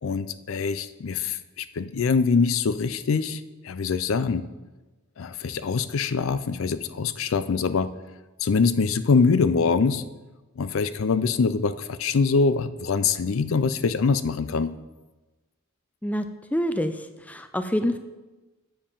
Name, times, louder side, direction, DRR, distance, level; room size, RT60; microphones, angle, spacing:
voice 1, 0.0-4.5 5.2-7.9 8.4-10.0 10.6-14.7, left 5 dB, 65° left, 13 dB, 0.4 m, -24 dB
voice 2, 16.5-16.9 17.3-18.0, equal, 5° left, 9 dB, 0.4 m, -25 dB
7.6 x 6.9 x 5.4 m, 1.1 s
head